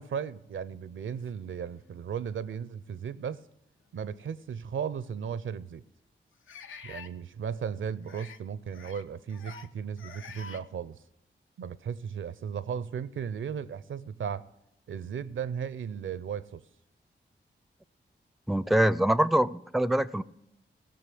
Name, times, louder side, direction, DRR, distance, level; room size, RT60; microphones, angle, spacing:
voice 1, 0.0-3.4 3.9-5.8 6.8-11.0 11.6-14.4 14.9-16.6, right 7 dB, 75° right, 0.5 m, -36 dB
sound 1, 1.7-1.8 2.5-2.6 4.3-4.4 6.5-7.1 8.0-8.4 8.7-9.0 9.3-9.7 10.0-10.6, left 5 dB, 80° left, 0.6 m, -46 dB
voice 2, 18.5-20.2, right 1 dB, ahead, 0.4 m, -24 dB
15.5 x 6.2 x 7.7 m
cardioid pair, 45°, 20 cm